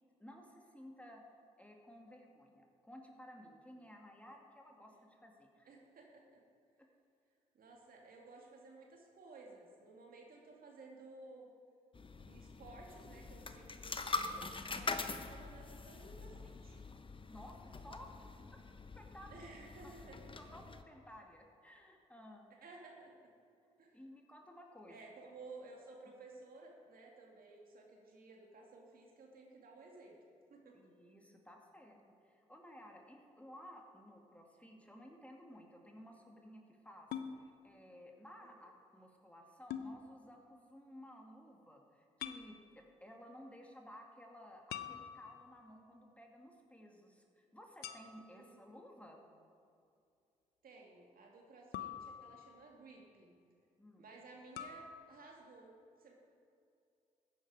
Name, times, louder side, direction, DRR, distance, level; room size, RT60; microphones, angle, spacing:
voice 1, 0.2-1.2 1.6-5.7 17.3-18.1 18.5-18.6 19.0-19.4 20.5-22.5 23.9-25.0 30.7-32.0 32.2-37.1 37.6-49.2 53.8-54.0, equal, 10° left, 1 dB, 2.4 m, -56 dB
voice 2, 5.7-6.4 7.5-11.5 12.3-16.8 19.3-20.4 22.6-23.3 23.8-24.0 24.9-30.2 30.5-30.8 38.4-38.6 48.3-48.7 50.6-53.3 54.0-55.7 56.0-56.1, right 3 dB, 60° right, 0 dB, 2.4 m, -56 dB
sound 1, 11.9-20.8, left 3 dB, 30° left, 1.0 m, -44 dB
sound 2, 37.1-37.3 39.7-39.9 42.2-42.5 44.7-45.6 47.8-48.4 51.7-52.7 54.6-54.9, left 9 dB, 70° left, 0.7 m, -45 dB
14.5 x 10.0 x 4.9 m, 2.4 s
hypercardioid pair, 45°, 17 cm